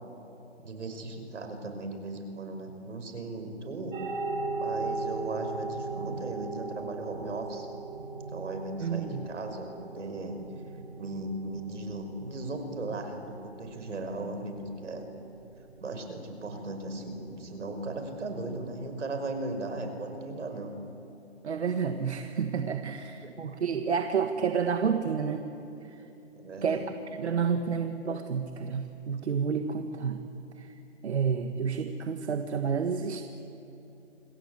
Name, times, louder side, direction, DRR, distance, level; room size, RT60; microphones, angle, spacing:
voice 1, 0.6-4.0 4.6-7.7 8.3-10.4 11.0-15.1 15.8-20.7 22.9-23.0 26.3-27.0, right 2 dB, 85° right, 6 dB, 5.6 m, -37 dB
sound 1, 3.9-18.7, right 3 dB, 45° right, 4.0 m, -39 dB
voice 2, 8.8-9.2 21.4-25.5 25.8-26.0 26.6-30.2 30.6-30.8 31.0-33.2, right 6 dB, 65° right, 6 dB, 1.9 m, -30 dB
28.0 x 23.0 x 8.2 m, 2.9 s
hypercardioid pair, 165°, 35 cm